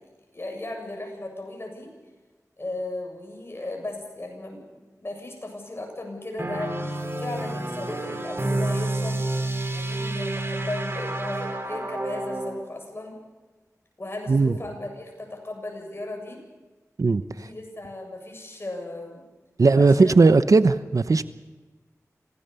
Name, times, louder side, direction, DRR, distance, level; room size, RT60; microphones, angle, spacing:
voice 1, 0.3-1.9 2.6-9.2 9.7-13.2 14.0-16.4 17.2-19.2 19.7-20.1, left 2 dB, 40° left, 2 dB, 7.7 m, -36 dB
sound 1, 6.4-12.6, right 2 dB, 45° right, 3.9 m, -29 dB
voice 2, 19.6-21.3, right 3 dB, 70° right, 13 dB, 0.9 m, -17 dB
26.5 x 17.5 x 7.0 m, 1.2 s
wide cardioid pair, 55°, 6 cm